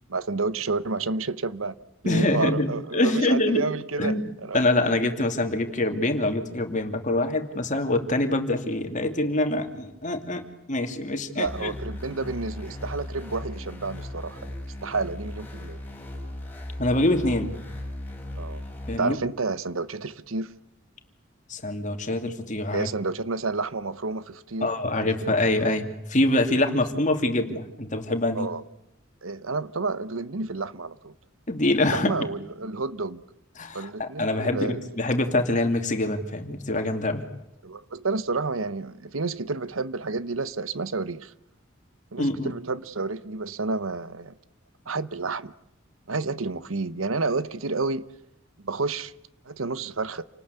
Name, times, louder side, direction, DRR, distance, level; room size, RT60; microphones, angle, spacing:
voice 1, 0.1-1.7 2.0-4.6 11.3-14.5 14.8-15.8 18.4-18.6 19.0-20.5 22.7-24.7 25.0-25.5 28.3-28.6 29.2-31.1 31.9-33.2 33.7-34.8 37.6-41.3 42.1-44.4 44.9-45.5 46.1-48.0 48.6-49.1 49.4-50.2, right 3 dB, 90° right, 1.0 m, -30 dB
voice 2, 2.0-3.7 4.0-4.3 4.5-11.7 16.8-17.5 18.9-19.2 21.5-22.9 24.6-28.5 31.5-32.3 33.6-37.2 42.2-42.5, left 1 dB, 40° left, 2.8 m, -25 dB
sound 1, 11.4-19.0, left 1 dB, 10° left, 6.7 m, -37 dB
28.5 x 19.5 x 8.3 m
head